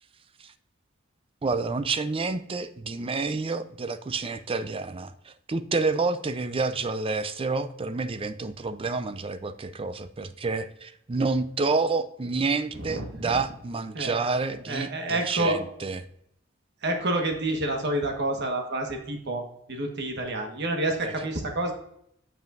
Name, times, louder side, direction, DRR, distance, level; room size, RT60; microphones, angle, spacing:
voice 1, 1.4-16.0 21.0-21.1, right 3 dB, 30° right, 12 dB, 0.4 m, -29 dB
voice 2, 12.7-13.4 13.9-14.3 14.7-15.6 16.8-19.4 19.7-21.7, right 1 dB, 60° right, 3 dB, 1.3 m, -28 dB
8.1 x 7.1 x 2.5 m, 0.74 s
head